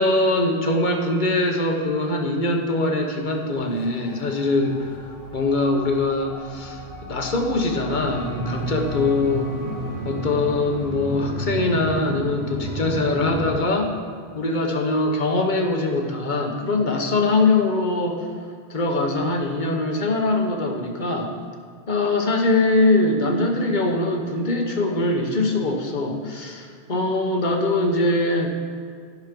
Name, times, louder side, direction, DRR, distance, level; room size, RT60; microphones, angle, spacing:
voice 1, 0.0-5.0 5.3-9.5 10.0-13.9 14.3-18.3 18.7-21.3 21.9-28.5, left 2 dB, 50° left, 2 dB, 1.3 m, -22 dB
sound 1, 2.9-11.2, equal, 65° left, 1.6 m, -41 dB
sound 2, 7.9-13.6, equal, 60° right, 2.4 m, -30 dB
12.5 x 6.4 x 5.3 m, 2.1 s
omnidirectional pair, 1.1 m